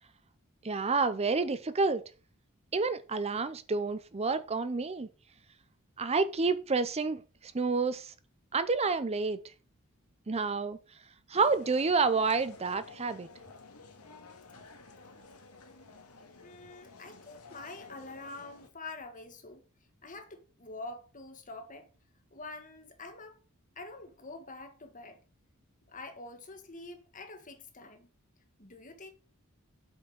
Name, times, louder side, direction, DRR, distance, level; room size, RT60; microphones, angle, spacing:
voice 1, 0.6-2.0 2.7-5.1 6.0-8.1 8.5-9.4 10.3-10.8 11.3-13.3, right 4 dB, 30° right, 0.6 m, -29 dB
sound 1, 11.3-18.7, left 3 dB, 90° left, 2.1 m, -52 dB
voice 2, 16.4-19.6 20.0-21.9 22.3-23.4 23.8-25.2 25.9-28.1 28.6-29.1, left 3 dB, 35° left, 1.8 m, -46 dB
8.4 x 6.0 x 6.4 m
head